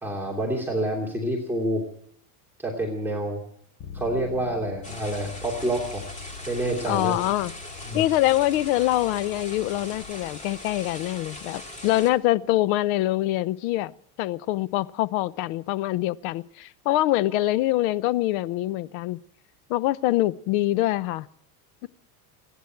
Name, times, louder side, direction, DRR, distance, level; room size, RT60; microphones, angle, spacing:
voice 1, 0.0-1.8 2.6-3.4 3.9-6.0 6.5-7.1 7.9-8.0, right 1 dB, 5° right, 2.9 m, -27 dB
Bass guitar, 3.8-10.0, left 5 dB, 45° left, 6.8 m, -44 dB
sound 1, 4.8-12.1, left 2 dB, 15° left, 2.6 m, -40 dB
voice 2, 6.8-7.5 7.9-13.9 14.2-19.2 19.7-21.3, left 16 dB, 65° left, 0.8 m, -24 dB
29.5 x 10.5 x 4.6 m
supercardioid pair, 135°, 45 cm